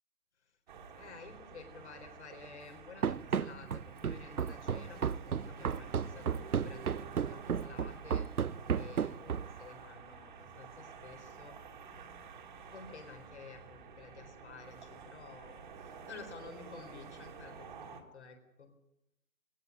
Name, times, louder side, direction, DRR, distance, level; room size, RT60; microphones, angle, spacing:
sound 1, 0.7-18.0, right 6 dB, 30° right, 2.4 m, -50 dB
voice 1, 0.9-8.3 8.7-11.6 12.7-18.7, left 5 dB, 50° left, 5 dB, 4.3 m, -52 dB
Run, 3.0-9.6, right 7 dB, 75° right, 0.8 m, -33 dB
17.5 x 17.5 x 9.6 m, 0.85 s
figure-of-eight pair, 155°, 44 cm